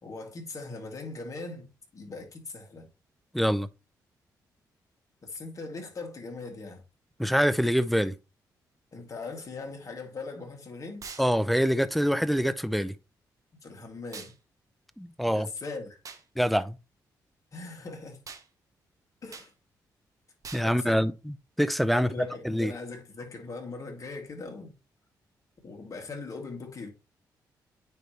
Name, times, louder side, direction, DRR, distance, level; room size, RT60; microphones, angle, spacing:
voice 1, 0.0-2.9 5.2-6.8 8.9-11.0 13.6-14.3 15.3-16.0 17.5-18.2 19.2-19.5 20.6-21.1 21.9-24.7 25.6-26.9, left 3 dB, 45° left, 2.3 m, -40 dB
voice 2, 3.3-3.7 7.2-8.1 11.2-12.9 15.0-15.5 16.4-16.8 20.5-21.1 21.6-22.1 22.4-22.7, equal, ahead, 0.5 m, -25 dB
sound 1, 11.0-11.3 14.1-14.4 16.0-16.2 18.3-18.5 19.3-19.5 20.4-20.7, right 5 dB, 50° right, 1.0 m, -43 dB
9.2 x 3.3 x 3.1 m
cardioid pair, 75°, 8 cm